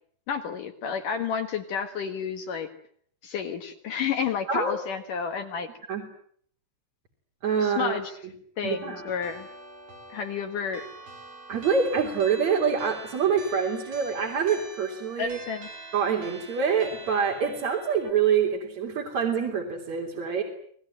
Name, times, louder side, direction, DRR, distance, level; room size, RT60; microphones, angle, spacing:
voice 1, 0.3-2.7 3.2-5.7 7.6-8.2 8.6-9.5 10.1-10.9 15.2-15.7, left 6 dB, 60° left, 6 dB, 2.8 m, -31 dB
voice 2, 7.4-8.0 8.6-9.1 11.5-15.4 15.9-20.4, right 6 dB, 45° right, -1 dB, 4.4 m, -26 dB
sound 1, 8.7-18.1, right 2 dB, 65° right, 6.0 m, -45 dB
27.0 x 20.0 x 9.1 m, 0.62 s
omnidirectional pair, 4.7 m